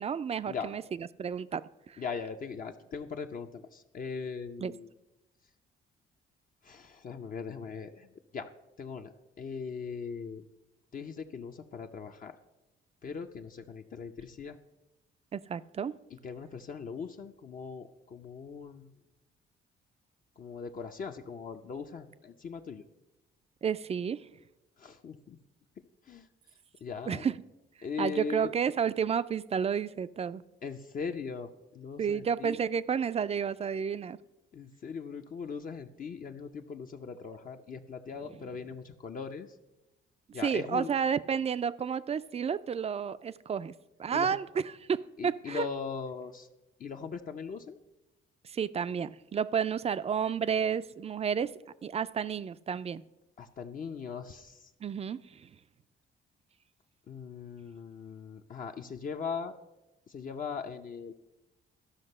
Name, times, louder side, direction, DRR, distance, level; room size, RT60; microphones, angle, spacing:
voice 1, 0.0-2.0 4.6-4.7 15.3-16.0 23.6-24.3 27.1-27.4 28.0-30.4 32.0-34.2 40.4-43.7 44.0-45.7 48.4-51.5 51.8-53.0 54.8-55.5, right 7 dB, 30° right, 16 dB, 0.3 m, -31 dB
voice 2, 2.0-4.9 6.6-8.1 8.3-8.5 8.8-10.4 10.9-12.4 13.0-14.6 16.2-18.9 20.4-22.8 24.8-25.4 26.1-26.3 26.8-27.3 27.8-28.5 30.6-32.6 34.5-39.5 40.3-40.9 44.1-44.4 45.2-46.5 46.8-47.8 53.4-54.7 57.1-59.5 60.1-61.1, left 5 dB, 45° left, 5 dB, 0.6 m, -40 dB
13.0 x 5.9 x 5.4 m, 0.98 s
cardioid pair, 90°, 20 cm